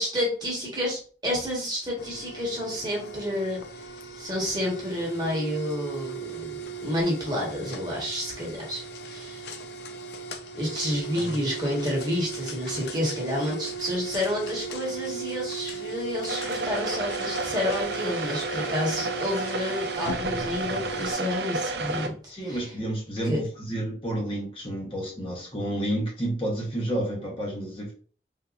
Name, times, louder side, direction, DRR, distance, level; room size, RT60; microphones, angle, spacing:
voice 1, 0.0-3.6 4.2-9.5 10.5-22.1 22.4-22.6 23.2-23.4, left 1 dB, 25° right, -3 dB, 1.2 m, -30 dB
sound 1, 2.0-21.1, right 4 dB, 70° left, 0.4 m, -37 dB
sound 2, 16.3-22.1, right 3 dB, 70° right, 0.4 m, -31 dB
voice 2, 22.3-27.9, right 1 dB, 30° left, -2 dB, 0.9 m, -30 dB
3.6 x 2.7 x 2.3 m, 0.42 s
head